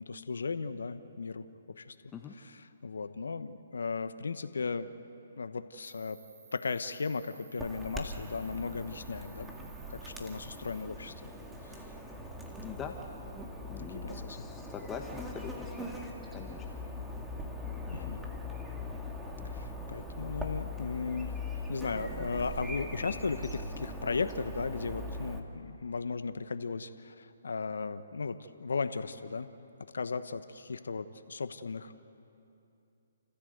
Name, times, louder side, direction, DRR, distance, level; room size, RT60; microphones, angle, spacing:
voice 1, 0.0-1.5 1.8-1.9 2.4-4.9 5.4-6.2 6.5-9.5 9.9-11.1 11.6-11.8 13.9-14.4 17.9-18.3 19.4-29.5 29.9-31.9, left 4 dB, 80° left, 11 dB, 1.1 m, -36 dB
Cricket, 5.8-10.8, right 5 dB, 55° right, 5.9 m, -57 dB
Chirp tweet / Buzz, 7.6-25.4, left 1 dB, 5° right, 2.0 m, -41 dB
voice 2, 12.6-13.0 13.7-16.6 17.9-18.2, left 6 dB, 15° left, 3 dB, 1.3 m, -43 dB
29.0 x 15.0 x 8.0 m, 2.8 s
hypercardioid pair, 140°, 0 cm